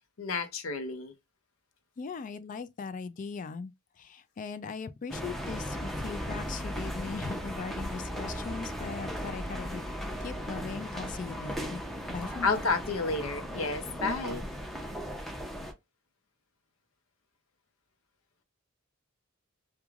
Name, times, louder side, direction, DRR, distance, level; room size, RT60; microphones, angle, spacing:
voice 1, 0.2-1.1 12.4-14.4, left 3 dB, 80° left, 0.6 m, -31 dB
voice 2, 2.0-3.7 4.0-9.8 10.2-11.8 12.1-12.6 14.0-14.2, left 5 dB, 40° left, 0.3 m, -39 dB
sound 1, 5.1-15.7, equal, ahead, 0.6 m, -37 dB
3.1 x 2.2 x 2.3 m
head